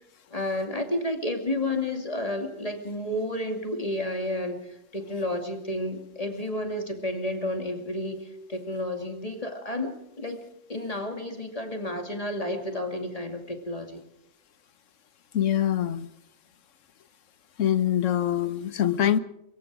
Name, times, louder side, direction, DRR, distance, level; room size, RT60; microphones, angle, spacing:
voice 1, 0.3-4.6 4.9-10.4 10.7-14.0, left 1 dB, 30° left, 4 dB, 2.5 m, -31 dB
voice 2, 15.3-16.1 17.6-19.2, left 10 dB, 80° left, 14 dB, 1.3 m, -24 dB
23.5 x 22.5 x 4.9 m, 0.80 s
omnidirectional pair, 1.3 m